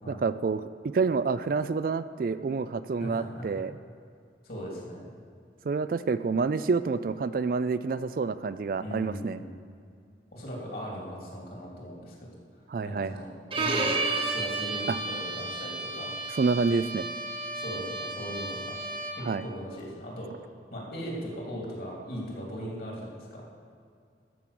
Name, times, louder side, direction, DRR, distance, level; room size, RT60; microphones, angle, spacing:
voice 1, 0.1-0.6 0.9-3.8 5.7-9.4 12.7-13.2 14.9-15.0 16.4-17.1 19.2-19.4, right 4 dB, 50° right, 13 dB, 0.3 m, -28 dB
voice 2, 3.0-3.6 4.4-5.1 8.8-9.5 10.3-12.1 12.8-16.1 17.5-18.7 19.1-20.3 20.7-23.4, equal, 55° left, -3 dB, 3.0 m, -39 dB
Bowed string instrument, 13.5-19.3, right 3 dB, 30° right, 1.0 m, -32 dB
13.0 x 6.2 x 7.0 m, 2.3 s
head